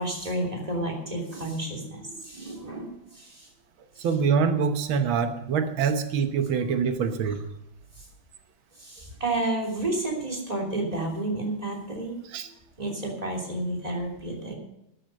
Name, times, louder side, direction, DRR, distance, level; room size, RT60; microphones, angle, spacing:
voice 1, 0.0-3.5 8.8-12.2 12.8-14.6, right 2 dB, 20° right, 1 dB, 3.2 m, -31 dB
voice 2, 4.0-7.4 12.3-12.5, right 6 dB, 90° right, 8 dB, 1.9 m, -25 dB
12.5 x 11.0 x 6.6 m, 0.84 s
omnidirectional pair, 2.1 m